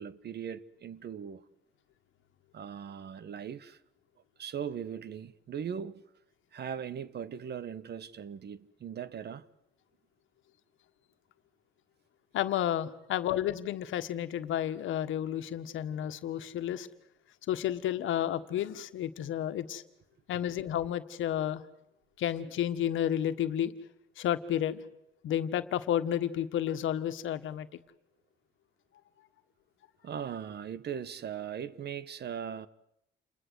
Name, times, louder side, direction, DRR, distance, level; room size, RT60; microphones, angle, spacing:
voice 1, 0.0-1.4 2.5-3.8 4.4-6.0 6.5-9.4 30.0-32.7, right 8 dB, 55° right, 1.3 m, -39 dB
voice 2, 12.3-16.9 17.5-19.8 20.3-21.6 22.2-23.7 24.2-24.8 25.2-27.7, left 11 dB, 80° left, 1.5 m, -31 dB
28.5 x 21.0 x 8.1 m
cardioid pair, 90°, 20 cm